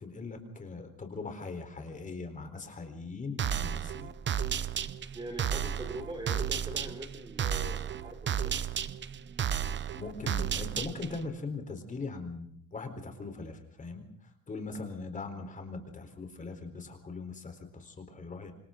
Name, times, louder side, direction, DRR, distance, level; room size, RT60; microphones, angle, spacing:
voice 1, 0.0-4.1 10.0-18.5, left 3 dB, 25° left, 5 dB, 4.1 m, -40 dB
sound 1, 3.4-11.3, right 8 dB, 35° right, 0.9 m, -33 dB
voice 2, 5.1-8.7, right 1 dB, 15° right, 5 dB, 3.5 m, -42 dB
27.5 x 27.0 x 3.9 m, 0.68 s
cardioid pair, 145°, 32 cm